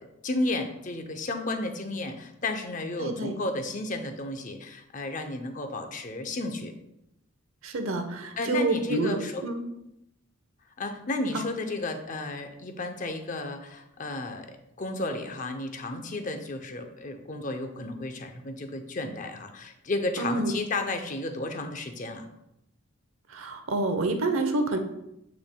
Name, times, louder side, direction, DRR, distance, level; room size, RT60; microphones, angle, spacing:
voice 1, 0.0-6.7 8.4-9.4 10.8-22.3, left 2 dB, 35° left, 6 dB, 0.6 m, -33 dB
voice 2, 3.0-3.3 7.6-9.2 9.4-9.6 11.3-11.5 20.2-20.5 23.3-24.8, right 2 dB, 75° right, 6 dB, 0.8 m, -28 dB
8.3 x 5.9 x 2.2 m, 0.84 s
head